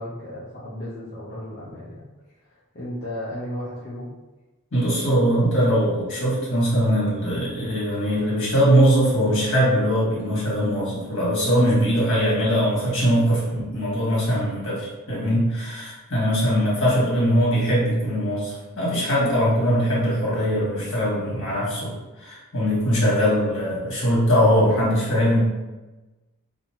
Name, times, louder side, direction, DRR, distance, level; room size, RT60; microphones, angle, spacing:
voice 1, 0.0-2.0 2.7-4.1, left 1 dB, 40° left, -9 dB, 0.6 m, -34 dB
voice 2, 4.7-21.9 22.2-25.4, equal, 60° left, -7 dB, 1.4 m, -21 dB
2.6 x 2.5 x 2.8 m, 1.1 s
head